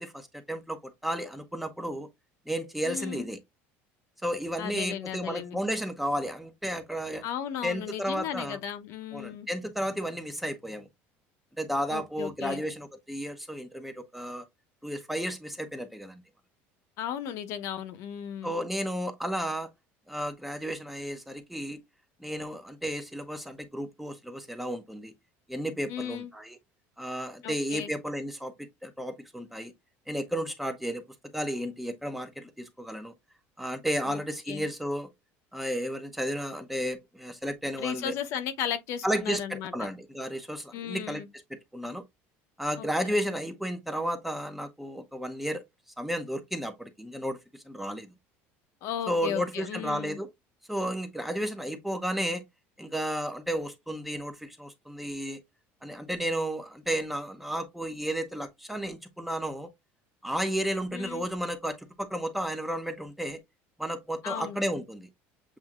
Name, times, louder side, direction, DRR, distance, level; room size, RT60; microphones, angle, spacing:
voice 1, 0.0-2.1 2.5-3.4 4.2-7.2 7.6-8.6 9.1-10.9 11.6-14.4 14.8-16.2 18.4-19.7 20.1-21.8 22.2-25.1 25.5-26.6 27.0-28.5 28.8-29.7 30.1-31.1 31.3-33.1 33.6-35.1 35.5-38.2 39.0-41.2 41.5-42.0 42.6-45.6 46.0-48.1 49.1-50.3 50.7-52.4 52.8-55.4 55.8-59.7 60.2-63.4 63.8-65.1, equal, 5° right, 0.7 m, -33 dB
voice 2, 2.8-3.3 4.6-5.6 7.2-9.5 11.9-12.6 17.0-18.5 25.9-26.3 27.4-27.9 34.1-34.2 34.5-34.6 37.8-39.7 40.7-41.3 42.8-43.1 48.8-50.2 60.9-61.2 64.2-64.6, left 9 dB, 60° left, 0.9 m, -35 dB
7.4 x 2.7 x 2.4 m
cardioid pair, 145°, 6 cm